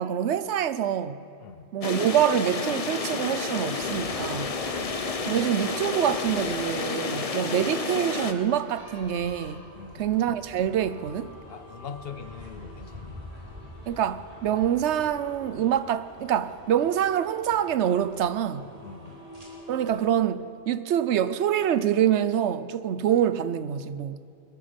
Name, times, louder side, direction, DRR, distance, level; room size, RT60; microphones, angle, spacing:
voice 1, 0.0-1.2 1.7-4.5 5.3-9.7 10.0-11.4 13.9-18.7 19.7-24.2, right 10 dB, 80° right, 0.9 m, -25 dB
voice 2, 1.4-1.7 4.3-4.9 9.8-10.1 11.5-13.2 18.8-19.2, left 6 dB, 60° left, 1.0 m, -42 dB
sound 1, 1.8-8.3, left 4 dB, 35° left, 0.8 m, -30 dB
sound 2, 2.5-20.0, equal, 35° right, 3.7 m, -46 dB
21.5 x 13.0 x 5.2 m
omnidirectional pair, 1.1 m